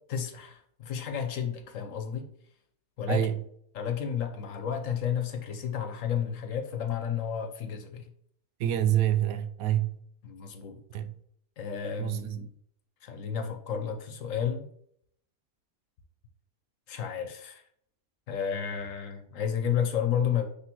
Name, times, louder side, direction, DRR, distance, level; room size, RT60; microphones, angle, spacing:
voice 1, 0.1-2.3 3.0-3.3 3.7-8.1 10.2-10.8 11.6-12.5 13.0-14.7 16.9-17.6 18.3-20.4, left 8 dB, 65° left, 1.2 m, -32 dB
voice 2, 3.1-3.4 8.6-10.0 10.9-11.1 12.0-12.4, right 11 dB, 80° right, 1.0 m, -27 dB
9.5 x 3.3 x 3.0 m
omnidirectional pair, 1.5 m